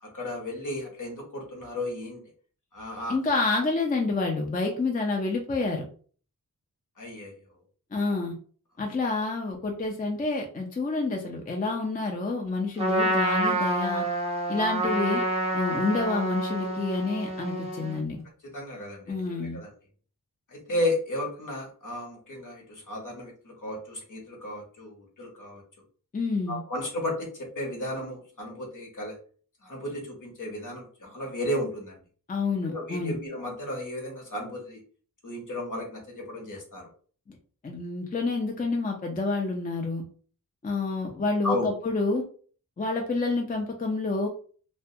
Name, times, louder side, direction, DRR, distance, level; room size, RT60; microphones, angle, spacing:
voice 1, 0.0-2.2 2.7-3.2 7.0-7.3 18.4-19.7 20.5-25.6 26.5-29.2 29.6-32.0 32.6-34.8 35.2-36.9 41.4-41.7, left 1 dB, 60° left, 0 dB, 1.0 m, -34 dB
voice 2, 3.1-5.8 7.9-8.3 8.8-14.0 14.5-15.2 15.5-18.2 19.1-19.6 26.1-26.6 32.3-33.2 37.3-37.4 37.6-40.0 40.6-42.2 42.8-44.3, left 3 dB, 25° left, 2 dB, 0.5 m, -28 dB
Trumpet, 12.8-18.0, right 1 dB, 15° right, 0.7 m, -28 dB
2.2 x 2.2 x 2.7 m, 0.42 s
wide cardioid pair, 75°, 35 cm